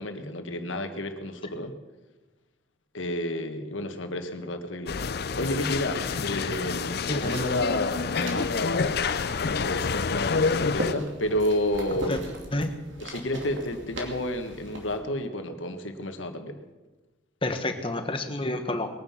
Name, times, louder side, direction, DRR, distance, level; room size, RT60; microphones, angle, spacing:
voice 1, 0.0-1.7 2.9-9.0 9.4-12.2 13.0-16.6, left 1 dB, 90° left, 6 dB, 1.6 m, -31 dB
sound 1, 4.9-10.9, left 5 dB, 55° left, 0.5 m, -28 dB
sound 2, 6.9-15.0, right 1 dB, 80° right, 2.6 m, -40 dB
voice 2, 17.4-18.9, left 1 dB, 30° left, 7 dB, 1.3 m, -29 dB
21.0 x 9.5 x 5.9 m, 1.1 s
head